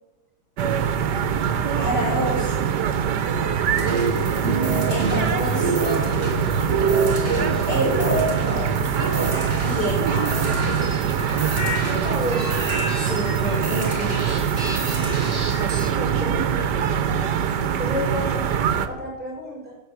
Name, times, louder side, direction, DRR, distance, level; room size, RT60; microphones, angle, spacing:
sound 1, 0.6-18.9, right 7 dB, 80° right, 1.5 m, -23 dB
voice 1, 1.8-2.5 4.9-5.7 7.7-8.2 9.6-10.2 13.0-14.4, left 1 dB, 80° left, -4 dB, 3.4 m, -28 dB
sound 2, 3.7-15.9, right 2 dB, 35° right, 4.0 m, -27 dB
voice 2, 4.1-4.6 11.9-12.5 16.0-16.5 17.7-18.4 18.8-19.7, equal, 5° right, -4 dB, 5.4 m, -31 dB
14.5 x 7.6 x 8.1 m, 1.2 s
omnidirectional pair, 1.8 m